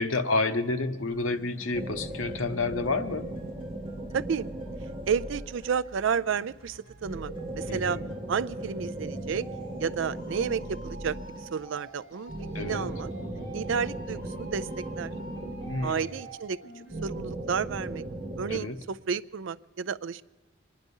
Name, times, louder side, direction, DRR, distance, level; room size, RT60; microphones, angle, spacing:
voice 1, 0.0-3.3 7.7-8.1 12.5-12.9 15.7-16.0 18.5-18.8, left 3 dB, 90° left, 9 dB, 1.0 m, -29 dB
sound 1, 1.1-17.1, right 2 dB, 25° left, 5.5 m, -50 dB
sound 2, 1.7-5.9 7.0-11.7 12.3-16.3 16.9-18.6, right 1 dB, 40° right, 2.3 m, -37 dB
voice 2, 4.1-4.5 5.1-8.0 8.3-9.4 9.8-12.3 12.6-13.1 13.5-15.1 15.8-16.6 17.0-18.0 18.4-20.2, right 6 dB, 75° right, 15 dB, 0.4 m, -31 dB
24.5 x 10.0 x 5.4 m, 1.2 s
head